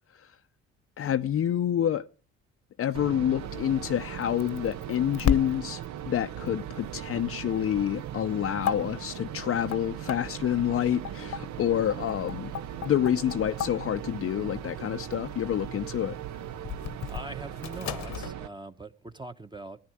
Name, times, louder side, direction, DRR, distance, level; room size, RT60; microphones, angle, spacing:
voice 1, 1.0-2.1 2.8-12.5 12.8-16.2, left 10 dB, 50° left, 0.6 m, -28 dB
sound 1, 2.9-18.5, right 11 dB, 65° right, 0.7 m, -39 dB
sound 2, 3.4-18.3, left 8 dB, 65° left, 1.0 m, -37 dB
voice 2, 17.1-19.8, right 2 dB, 15° right, 1.0 m, -42 dB
14.0 x 9.6 x 7.6 m
supercardioid pair, 75°, 30 cm